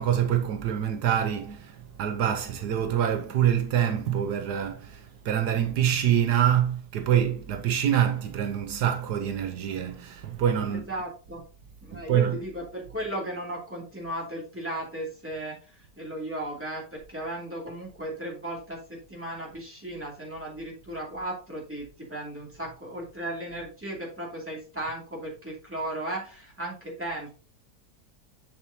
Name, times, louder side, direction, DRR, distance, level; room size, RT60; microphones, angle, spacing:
voice 1, 0.0-10.9 11.9-12.5, right 10 dB, 80° right, 1.4 m, -25 dB
voice 2, 10.7-11.4 11.8-27.4, right 1 dB, 10° right, 2.6 m, -36 dB
7.3 x 7.2 x 2.8 m
omnidirectional pair, 1.7 m